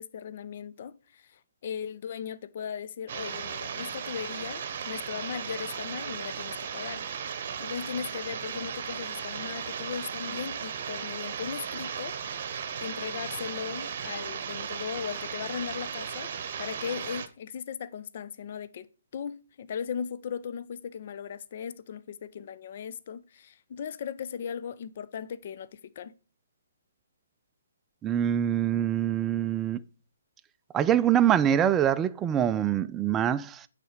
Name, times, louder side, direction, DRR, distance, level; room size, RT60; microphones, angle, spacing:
voice 1, 0.0-7.0 7.6-12.2 12.5-16.3 16.6-18.9 19.1-26.1, left 7 dB, 45° left, 0.6 m, -38 dB
sound 1, 3.1-17.3, right 7 dB, 45° right, 0.9 m, -36 dB
voice 2, 28.0-29.8 30.7-33.7, right 10 dB, 15° right, 0.4 m, -24 dB
9.3 x 4.2 x 6.4 m
figure-of-eight pair, 135°, 0 cm